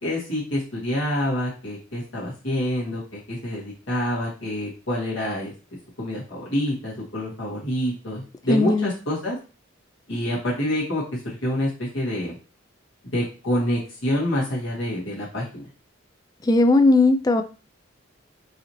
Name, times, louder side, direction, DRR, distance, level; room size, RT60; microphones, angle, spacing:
voice 1, 0.0-5.5 6.0-9.4 10.1-12.4 13.1-15.7, left 1 dB, 65° left, 1.6 m, -27 dB
voice 2, 8.5-8.9 16.5-17.4, left 2 dB, 20° left, 0.3 m, -17 dB
4.8 x 2.8 x 3.0 m
head